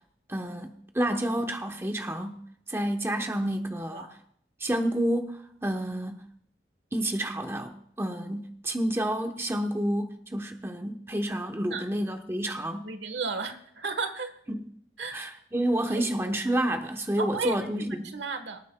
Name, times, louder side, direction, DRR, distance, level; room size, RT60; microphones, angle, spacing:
voice 1, 0.3-2.4 2.7-4.1 4.6-6.3 6.9-12.9 14.5-14.7 15.1-18.1, right 1 dB, 15° right, 0.9 m, -29 dB
voice 2, 12.8-14.3 15.0-15.1 15.9-16.1 17.2-18.6, right 4 dB, 85° right, 1.3 m, -34 dB
24.0 x 9.3 x 2.3 m
head